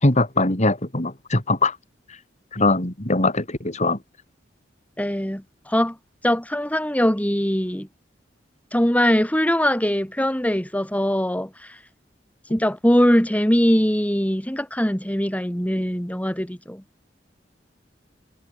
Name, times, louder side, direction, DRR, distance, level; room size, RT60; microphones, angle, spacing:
voice 1, 0.0-1.8 2.5-4.0, left 2 dB, 40° left, 4.1 m, -21 dB
voice 2, 5.0-6.0 6.2-7.9 8.7-11.8 12.5-16.8, equal, 10° left, 2.7 m, -21 dB
head